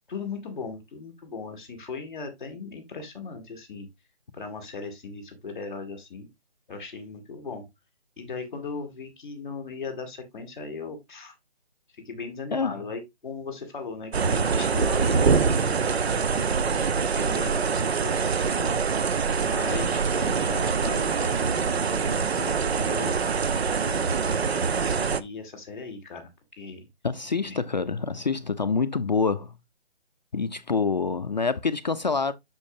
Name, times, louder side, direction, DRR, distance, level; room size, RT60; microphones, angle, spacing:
voice 1, 0.1-3.9 4.3-6.3 6.7-7.7 8.2-11.3 11.9-16.5 17.1-18.8 19.4-23.1 23.6-24.5 24.8-26.3 26.6-26.9 27.4-27.6, left 4 dB, ahead, 0.6 m, -38 dB
sound 1, 14.1-25.2, right 5 dB, 65° right, 0.9 m, -24 dB
voice 2, 27.0-29.5 30.3-32.3, left 4 dB, 40° left, 0.5 m, -26 dB
8.4 x 6.3 x 2.6 m
hypercardioid pair, 165°, 33 cm